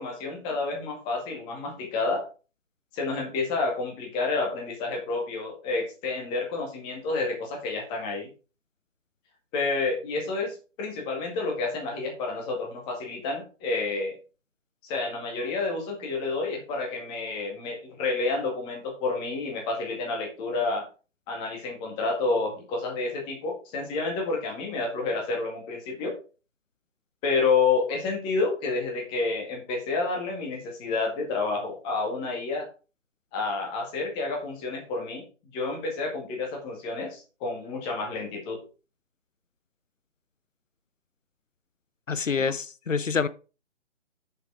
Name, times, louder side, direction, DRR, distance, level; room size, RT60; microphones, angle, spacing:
voice 1, 0.0-2.2 2.9-8.3 9.5-14.2 14.8-20.9 21.3-26.1 27.2-32.7 33.3-35.2 35.5-38.6 42.4-42.5, left 3 dB, 15° left, 2.0 m, -29 dB
voice 2, 42.1-43.3, left 5 dB, 80° left, 0.7 m, -26 dB
7.3 x 6.8 x 4.8 m
figure-of-eight pair, 145°, 38 cm